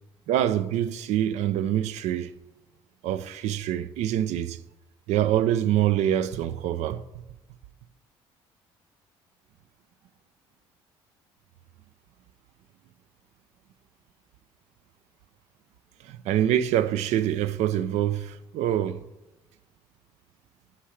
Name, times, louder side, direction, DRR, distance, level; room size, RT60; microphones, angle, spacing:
voice 1, 0.3-2.3 3.0-4.6 5.1-7.0 16.0-19.0, right 11 dB, 75° right, 0.5 m, -25 dB
11.0 x 7.2 x 3.2 m
supercardioid pair, 70°, 12 cm